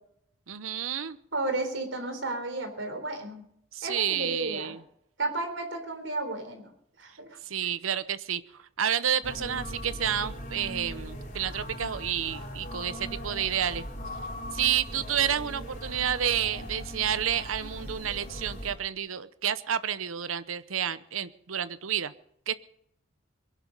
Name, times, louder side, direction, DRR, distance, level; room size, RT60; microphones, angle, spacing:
voice 1, 0.5-1.2 3.7-4.8 7.4-8.4 8.8-13.8 14.5-22.1 22.5-22.6, right 9 dB, 90° right, 15 dB, 0.8 m, -30 dB
voice 2, 1.3-3.4 3.8-4.7 5.2-6.7 7.0-7.4, right 2 dB, 70° right, 5 dB, 3.9 m, -33 dB
sound 1, 9.2-18.7, equal, 35° left, 4.6 m, -39 dB
22.5 x 11.0 x 5.4 m, 0.72 s
head